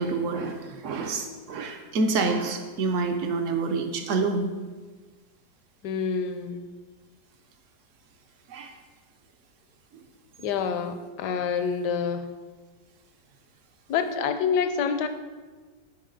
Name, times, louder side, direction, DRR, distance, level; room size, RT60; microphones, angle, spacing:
voice 1, 0.0-4.5 8.5-8.7, right 3 dB, 70° right, 5 dB, 0.7 m, -27 dB
voice 2, 5.8-6.7 10.4-12.3 13.9-15.1, left 6 dB, 70° left, 9 dB, 1.1 m, -27 dB
10.0 x 4.8 x 3.8 m, 1.4 s
omnidirectional pair, 2.0 m